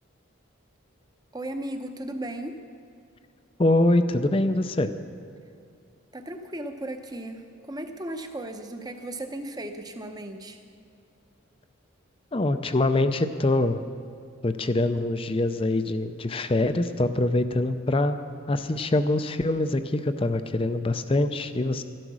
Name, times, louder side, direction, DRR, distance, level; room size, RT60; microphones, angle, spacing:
voice 1, 1.3-2.6 6.1-10.6, right 1 dB, 20° right, 6 dB, 0.8 m, -36 dB
voice 2, 3.6-4.9 12.3-13.8 14.4-18.2 18.5-21.8, left 2 dB, 25° left, 10 dB, 0.5 m, -24 dB
13.5 x 12.0 x 6.2 m, 2.5 s
head